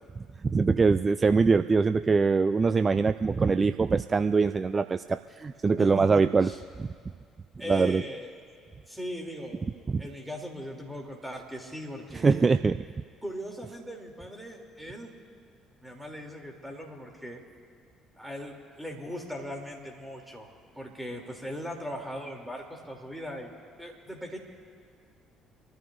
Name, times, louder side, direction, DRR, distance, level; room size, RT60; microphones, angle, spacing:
voice 1, 0.5-6.5 6.8-6.9 7.7-8.0 9.9-10.0 12.2-12.8, right 4 dB, 30° right, 11 dB, 0.3 m, -23 dB
voice 2, 5.8-6.6 7.6-8.3 8.9-9.6 10.0-12.4 13.2-15.1 15.8-17.4 18.1-23.5 23.8-24.4, equal, 5° right, 1 dB, 3.2 m, -39 dB
26.0 x 14.0 x 2.7 m, 2.2 s
figure-of-eight pair, 50°, 0 cm